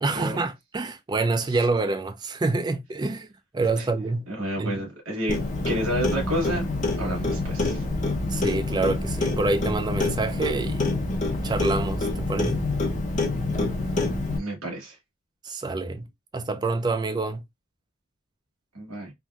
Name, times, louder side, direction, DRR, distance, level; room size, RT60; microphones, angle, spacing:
voice 1, 0.0-3.3 3.5-4.3 4.6-4.8 8.3-10.8 11.4-12.6 15.4-16.1 16.3-17.4, right 3 dB, 20° right, 0.3 m, -27 dB
voice 2, 4.3-5.4 5.6-6.6 7.0-7.8 14.3-15.0 18.7-19.1, right 1 dB, 70° right, 1.3 m, -30 dB
Clock, 5.3-14.4, left 2 dB, 35° left, 0.6 m, -26 dB
3.4 x 2.6 x 2.3 m
head